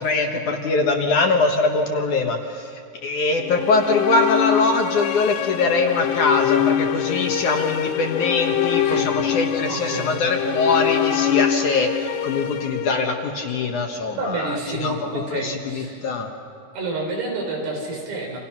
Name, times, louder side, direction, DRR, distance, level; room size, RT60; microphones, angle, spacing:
voice 1, 0.0-2.7 3.0-14.9 15.3-16.3, left 3 dB, 60° left, 3 dB, 2.3 m, -22 dB
sound 1, 3.4-13.6, left 10 dB, 75° left, 2.2 m, -24 dB
voice 2, 9.7-10.2 14.1-16.1 16.7-18.4, right 2 dB, 85° right, 0 dB, 6.7 m, -29 dB
29.5 x 27.0 x 6.0 m, 2.5 s
omnidirectional pair, 4.7 m